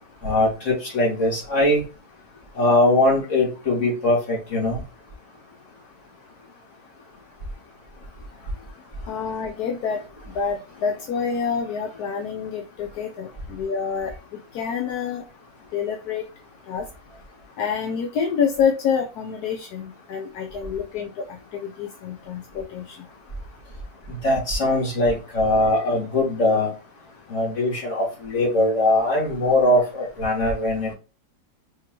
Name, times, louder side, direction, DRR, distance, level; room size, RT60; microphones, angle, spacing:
voice 1, 0.2-1.8 2.5-4.8 24.1-26.7 27.3-30.9, left 1 dB, 45° left, -2 dB, 2.4 m, -21 dB
voice 2, 9.1-10.0 10.3-14.1 14.5-15.2 15.7-16.2 16.7-16.8 17.6-23.0, left 6 dB, 70° left, 3 dB, 1.2 m, -27 dB
4.7 x 3.8 x 2.9 m, 0.32 s
omnidirectional pair, 1.9 m